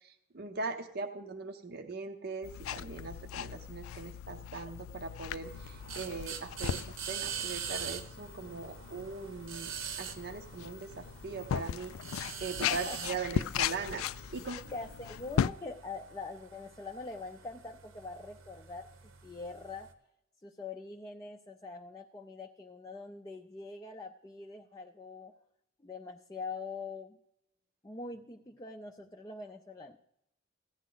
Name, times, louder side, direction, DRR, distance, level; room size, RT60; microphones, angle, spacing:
voice 1, 0.0-6.8 7.1-14.0 14.3-14.7, right 4 dB, 50° right, 4 dB, 0.6 m, -40 dB
sound 1, 2.4-15.5, left 9 dB, 80° left, 0.3 m, -38 dB
sound 2, 5.4-19.9, right 7 dB, 80° right, 1.0 m, -44 dB
voice 2, 12.7-13.0 14.7-18.9 19.2-19.9 20.4-25.3 25.8-27.2 27.8-30.0, left 3 dB, 20° left, 2 dB, 0.4 m, -43 dB
15.5 x 10.0 x 3.9 m, 0.78 s
head